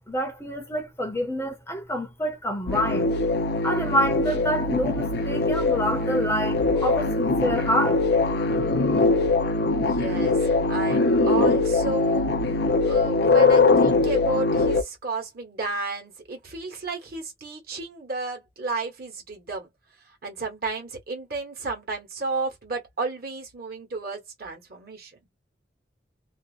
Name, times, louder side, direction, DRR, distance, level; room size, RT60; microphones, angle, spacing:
voice 1, 0.1-3.1 3.6-8.0, equal, 15° left, 0.6 m, -27 dB
sound 1, 2.7-14.8, left 3 dB, 60° left, 0.5 m, -22 dB
voice 2, 9.8-12.3 12.9-19.7 20.2-25.2, right 3 dB, 55° right, 1.2 m, -32 dB
2.7 x 2.0 x 2.4 m
head